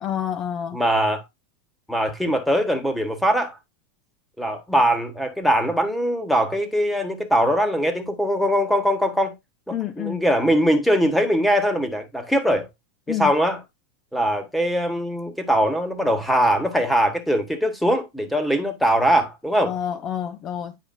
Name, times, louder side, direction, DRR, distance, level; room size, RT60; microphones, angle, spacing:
voice 1, 0.0-0.8 9.7-10.2 13.1-13.3 19.6-20.8, left 10 dB, 35° left, 0.6 m, -28 dB
voice 2, 0.7-1.2 1.9-3.6 4.4-9.3 9.7-12.7 13.1-13.6 14.1-19.8, equal, 5° left, 1.4 m, -21 dB
9.2 x 4.9 x 2.6 m
supercardioid pair, 135°, 0 cm